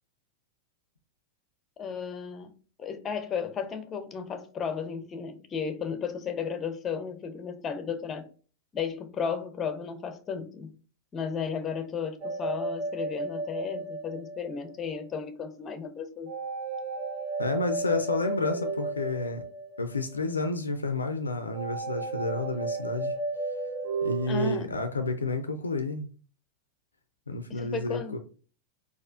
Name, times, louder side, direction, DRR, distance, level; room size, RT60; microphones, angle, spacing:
voice 1, 1.8-2.5 2.8-8.2 8.7-10.7 11.1-16.3 24.3-24.7 27.5-28.2, left 6 dB, 25° left, 0.5 m, -34 dB
sound 1, 12.2-14.9 16.3-20.2 21.5-24.6, right 3 dB, 45° right, 0.4 m, -33 dB
voice 2, 17.4-19.4 19.8-23.1 24.0-26.1 27.3-28.2, left 3 dB, 75° left, 0.4 m, -30 dB
4.1 x 2.4 x 2.4 m
figure-of-eight pair, 90°, 0 cm